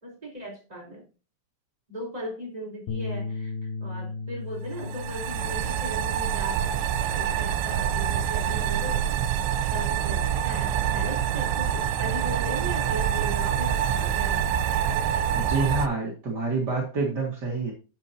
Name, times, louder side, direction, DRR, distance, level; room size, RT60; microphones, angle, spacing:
voice 1, 0.0-1.0 1.9-9.1 9.7-14.6, equal, 10° right, -1 dB, 3.2 m, -38 dB
Bass guitar, 2.9-9.1, left 3 dB, 90° left, 1.6 m, -37 dB
sound 1, 4.7-15.9, right 9 dB, 85° right, 2.9 m, -26 dB
voice 2, 15.3-17.7, right 3 dB, 60° right, -1 dB, 1.1 m, -27 dB
10.0 x 6.9 x 2.8 m, 0.33 s
omnidirectional pair, 5.0 m